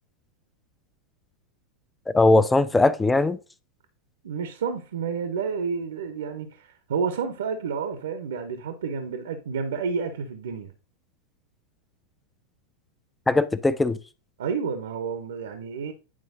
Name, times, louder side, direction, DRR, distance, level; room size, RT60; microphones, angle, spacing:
voice 1, 2.1-3.4 13.3-14.0, left 2 dB, 10° left, 0.4 m, -20 dB
voice 2, 4.2-10.7 14.4-15.9, right 5 dB, 60° right, 0.6 m, -30 dB
9.6 x 4.5 x 2.7 m
figure-of-eight pair, 90°, 0 cm